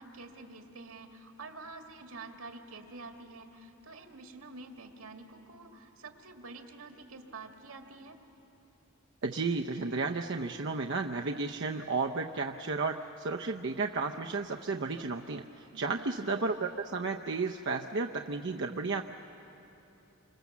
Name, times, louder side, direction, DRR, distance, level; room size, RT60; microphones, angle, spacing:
voice 1, 0.0-8.2 15.7-16.1, right 3 dB, 80° right, 4 dB, 2.1 m, -48 dB
voice 2, 9.2-19.0, right 3 dB, 55° right, 3 dB, 0.6 m, -33 dB
27.5 x 25.5 x 7.3 m, 3.0 s
head